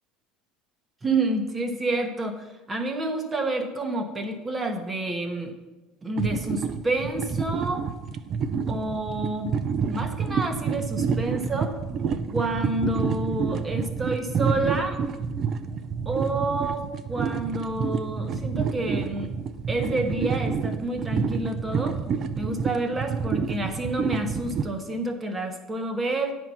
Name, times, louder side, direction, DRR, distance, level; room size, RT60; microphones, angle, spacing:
voice 1, 1.0-5.5 6.0-7.9 8.7-11.8 12.3-15.0 16.0-19.3 19.7-22.0 22.4-26.3, right 2 dB, 20° right, 5 dB, 1.1 m, -29 dB
sound 1, 6.2-24.6, right 6 dB, 40° right, 0.5 m, -28 dB
9.2 x 4.6 x 5.6 m, 1.1 s
supercardioid pair, 120°, 0 cm